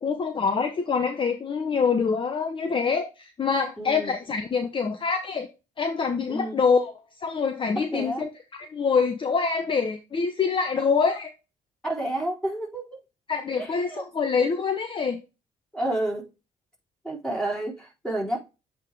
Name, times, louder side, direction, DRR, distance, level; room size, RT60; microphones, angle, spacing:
voice 1, 0.0-5.5 5.8-6.9 7.2-11.3 13.3-15.2, left 5 dB, 40° left, 0.9 m, -25 dB
voice 2, 3.8-4.1 6.3-6.6 7.8-8.2 11.8-13.0 13.6-14.0 15.7-16.3 17.0-18.4, right 1 dB, 5° left, 4.1 m, -30 dB
8.1 x 3.7 x 3.3 m
cardioid pair, 90°, 14 cm